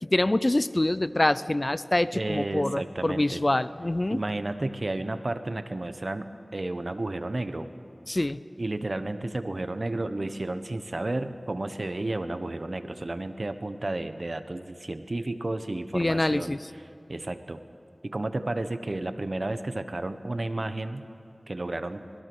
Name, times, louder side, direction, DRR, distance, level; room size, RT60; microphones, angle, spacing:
voice 1, 0.0-4.2 8.1-8.4 15.9-16.6, left 1 dB, 40° left, 16 dB, 0.6 m, -25 dB
voice 2, 2.1-3.4 4.1-7.7 8.6-16.6 17.1-17.6 18.0-21.1 21.5-22.0, right 2 dB, 60° right, 9 dB, 1.2 m, -32 dB
25.5 x 21.0 x 6.3 m, 2.7 s
wide cardioid pair, 40°, 0 cm